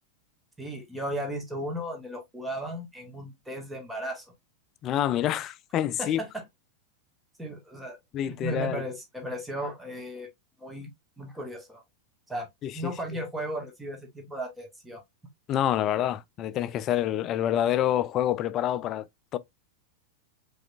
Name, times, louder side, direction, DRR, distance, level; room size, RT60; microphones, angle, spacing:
voice 1, 0.6-4.3 6.0-6.4 7.4-8.0 8.2-10.3 10.6-10.9 11.2-11.8 12.3-12.5 12.7-15.0, right 1 dB, 5° right, 1.5 m, -35 dB
voice 2, 4.8-6.2 8.1-8.8 12.6-12.9 15.5-19.1 19.3-19.4, left 11 dB, 35° left, 0.4 m, -27 dB
4.8 x 4.1 x 2.3 m
figure-of-eight pair, 90°, 0 cm